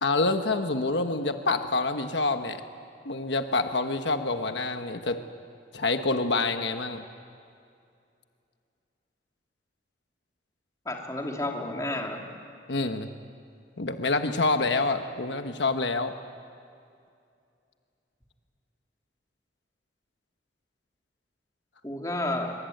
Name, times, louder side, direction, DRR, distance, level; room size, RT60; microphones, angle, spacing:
voice 1, 0.0-2.6 3.0-5.2 5.7-7.0 12.7-13.1 13.8-16.1, left 3 dB, 90° left, 7 dB, 1.3 m, -27 dB
voice 2, 10.8-12.2 21.8-22.5, left 1 dB, 20° left, 1 dB, 2.8 m, -31 dB
23.5 x 23.5 x 9.3 m, 2.4 s
head